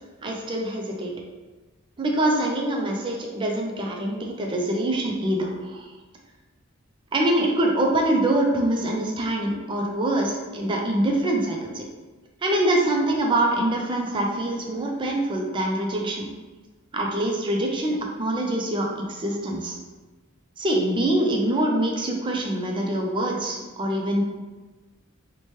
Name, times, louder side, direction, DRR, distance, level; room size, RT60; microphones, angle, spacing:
voice 1, 0.2-1.1 2.0-5.9 7.1-11.9 12.4-16.3 16.9-19.8 20.6-24.2, right 1 dB, 25° right, 1 dB, 0.4 m, -24 dB
2.9 x 2.1 x 3.0 m, 1.2 s
head